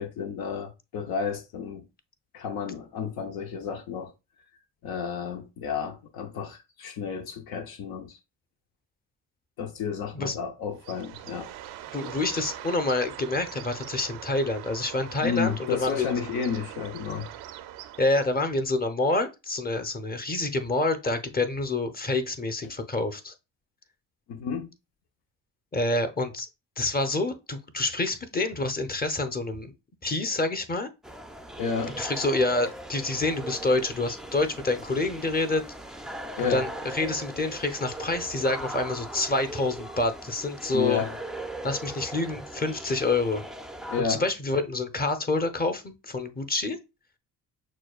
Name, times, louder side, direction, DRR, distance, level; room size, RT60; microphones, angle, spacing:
voice 1, 0.0-1.9 2.3-4.1 4.8-8.2 9.6-11.5 15.2-17.3 22.6-22.7 24.3-24.7 31.6-32.0 36.4-36.6 40.7-41.2 43.9-44.2, left 6 dB, 65° left, 0.7 m, -31 dB
Bird, 10.8-18.5, right 12 dB, 75° right, 0.6 m, -42 dB
voice 2, 11.9-16.2 18.0-23.3 25.7-26.5 26.8-29.7 30.0-30.9 32.0-35.6 36.4-41.0 41.6-43.4 44.0-46.8, left 2 dB, 25° left, 0.8 m, -27 dB
sound 1, 31.0-44.0, right 1 dB, ahead, 0.4 m, -39 dB
6.1 x 2.3 x 2.3 m
supercardioid pair, 55°, 39 cm